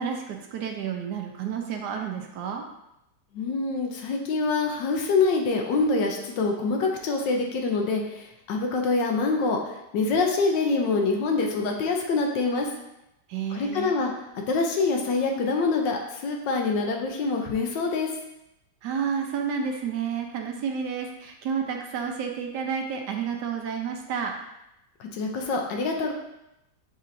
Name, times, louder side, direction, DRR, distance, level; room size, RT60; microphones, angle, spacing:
voice 1, 0.0-2.6 13.3-14.0 18.8-24.3, right 7 dB, 75° right, 3 dB, 1.2 m, -30 dB
voice 2, 3.3-12.7 13.5-14.1 14.5-18.1 25.0-26.1, left 3 dB, 85° left, 1 dB, 1.4 m, -25 dB
7.2 x 2.8 x 2.6 m, 0.87 s
omnidirectional pair, 1.9 m